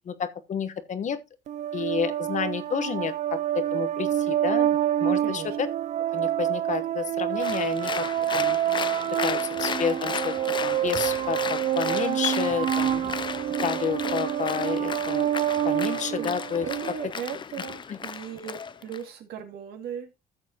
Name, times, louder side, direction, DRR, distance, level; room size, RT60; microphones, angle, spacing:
voice 1, 0.1-1.2 1.7-5.7 6.1-8.1 8.3-8.6 9.2-10.3 10.6-13.0 13.6-15.2 15.6-16.7 17.9-18.0, left 7 dB, 45° left, 1.2 m, -30 dB
sound 1, 1.5-16.9, right 11 dB, 45° right, 0.4 m, -27 dB
voice 2, 5.2-5.6 16.2-16.4 16.6-20.1, right 8 dB, 70° right, 2.4 m, -37 dB
Applause, 7.4-19.0, left 6 dB, 30° left, 0.5 m, -35 dB
13.5 x 7.2 x 2.9 m
cardioid pair, 110°, 17 cm